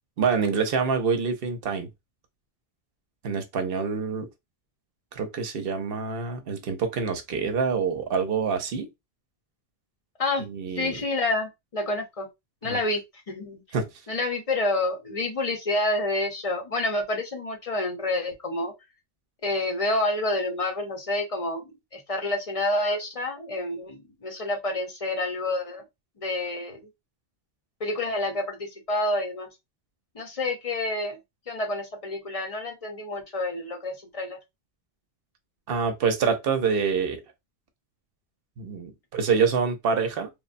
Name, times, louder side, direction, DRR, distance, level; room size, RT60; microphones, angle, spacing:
voice 1, 0.2-1.9 3.2-4.3 5.1-8.9 10.4-11.0 12.6-12.8 13.7-13.9 35.7-37.2 38.6-40.3, right 5 dB, 65° right, 0.8 m, -26 dB
voice 2, 10.8-12.3 12.6-13.6 14.1-18.7 19.4-21.6 21.9-25.8 26.2-26.8 27.8-29.5 30.1-31.2 31.5-34.4, left 2 dB, 40° left, 0.7 m, -28 dB
3.3 x 2.0 x 2.5 m
omnidirectional pair, 1.1 m